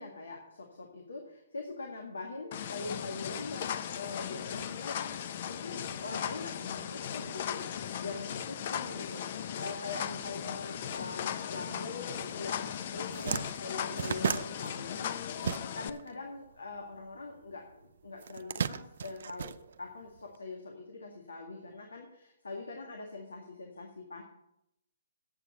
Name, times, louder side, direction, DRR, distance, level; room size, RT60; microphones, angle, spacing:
voice 1, 0.0-5.0 5.4-15.5 15.7-19.5 19.8-24.2, left 3 dB, 85° left, 1 dB, 1.9 m, -43 dB
sound 1, 2.5-15.9, left 9 dB, 50° left, 0.6 m, -37 dB
sound 2, 12.5-12.7 12.9-16.1 16.3-17.5 18.2-20.2, right 7 dB, 65° right, 0.5 m, -35 dB
8.6 x 6.7 x 8.2 m, 0.82 s
hypercardioid pair, 140°, 0 cm